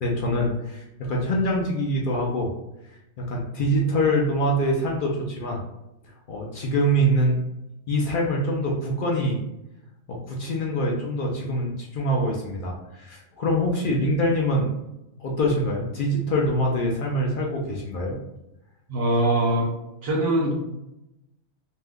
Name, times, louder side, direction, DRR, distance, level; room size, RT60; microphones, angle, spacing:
voice 1, 0.0-2.5 3.3-5.6 6.3-7.4 7.9-9.4 10.1-14.7 15.2-18.2, equal, 60° left, -2 dB, 0.5 m, -24 dB
voice 2, 18.9-19.7 20.0-20.6, right 1 dB, 55° right, -1 dB, 0.7 m, -22 dB
2.6 x 2.1 x 3.5 m, 0.91 s
omnidirectional pair, 1.4 m